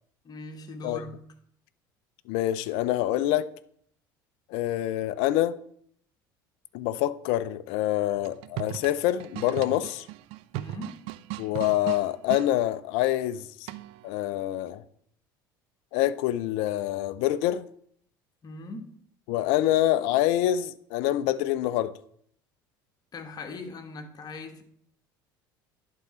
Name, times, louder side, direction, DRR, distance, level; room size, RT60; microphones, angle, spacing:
voice 1, 0.2-1.2 10.5-11.0 18.4-18.9 23.1-24.6, left 3 dB, 35° left, 1.3 m, -40 dB
voice 2, 2.3-3.5 4.5-5.6 6.7-10.1 11.4-13.7 14.0-14.8 15.9-17.7 19.3-21.9, left 13 dB, 65° left, 0.4 m, -26 dB
sound 1, 8.2-12.5 13.7-14.1, right 16 dB, 60° right, 0.4 m, -37 dB
11.0 x 3.8 x 4.3 m
hypercardioid pair, 70°, 11 cm